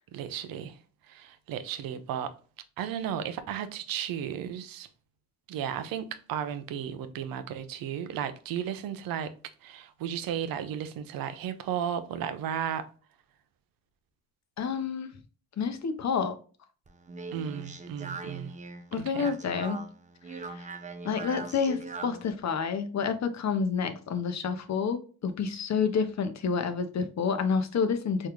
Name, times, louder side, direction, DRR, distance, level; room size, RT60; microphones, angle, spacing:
voice 1, 0.1-0.8 1.1-2.3 2.8-4.9 5.5-9.3 9.6-12.9 17.3-18.5 18.9-19.3, right 9 dB, 85° right, 0.5 m, -34 dB
voice 2, 14.6-15.1 15.6-16.4 18.9-19.9 20.4-20.7 21.0-28.3, left 6 dB, 55° left, 0.6 m, -29 dB
Speech, 16.9-22.3, right 4 dB, 20° right, 0.5 m, -41 dB
3.5 x 2.3 x 3.0 m
cardioid pair, 60°, 34 cm